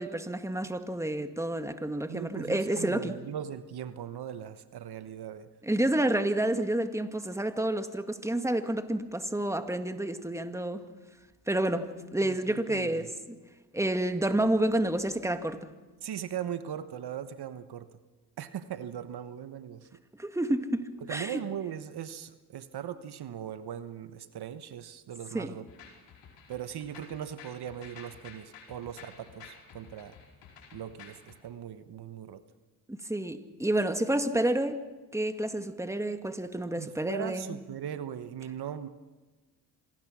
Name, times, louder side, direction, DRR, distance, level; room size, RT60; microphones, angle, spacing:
voice 1, 0.0-3.1 5.6-10.9 11.5-13.4 13.7-15.7 20.2-21.4 25.3-25.5 32.9-34.8 35.1-37.6, right 1 dB, 5° right, 1.9 m, -29 dB
voice 2, 2.1-5.5 12.2-13.1 16.0-18.0 18.4-19.9 21.0-25.7 26.5-30.1 30.7-32.4 36.8-38.9, right 9 dB, 65° right, 1.2 m, -39 dB
sound 1, 25.7-31.4, left 6 dB, 80° left, 5.2 m, -51 dB
26.0 x 18.5 x 6.2 m
supercardioid pair, 55°, 43 cm